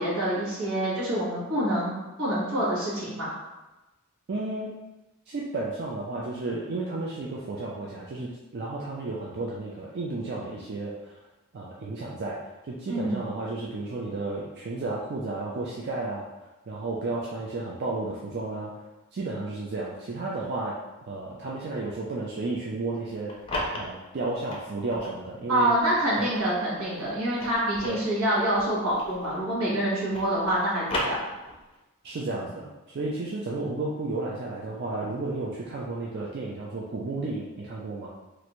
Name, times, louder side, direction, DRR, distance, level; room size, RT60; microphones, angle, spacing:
voice 1, 0.0-3.3 12.9-13.2 25.5-31.2, right 1 dB, 80° right, -7 dB, 1.2 m, -26 dB
voice 2, 4.3-4.7 5.3-11.2 11.5-12.4 12.6-16.2 16.7-18.7 19.1-20.7 21.0-23.3 23.7-25.7 26.2-26.3 27.8-28.0 32.0-38.1, right 2 dB, 50° right, -4 dB, 0.4 m, -32 dB
sound 1, 23.1-25.2 25.8-29.5 29.8-31.8, left 1 dB, 25° left, 0.5 m, -36 dB
3.2 x 2.5 x 2.9 m, 1.1 s
head